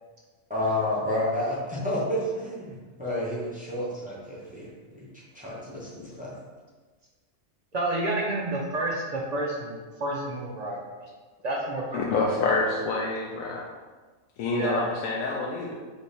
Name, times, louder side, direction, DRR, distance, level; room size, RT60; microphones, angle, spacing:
voice 1, 0.5-5.1 5.3-6.3, left 1 dB, 5° right, -7 dB, 0.7 m, -30 dB
voice 2, 7.7-11.1 11.4-12.0 12.5-12.6 14.5-14.9, right 2 dB, 55° right, -2 dB, 0.4 m, -30 dB
voice 3, 11.9-13.7 14.4-15.7, left 3 dB, 75° left, -2 dB, 1.0 m, -27 dB
3.3 x 3.3 x 4.2 m, 1.4 s
omnidirectional pair, 1.5 m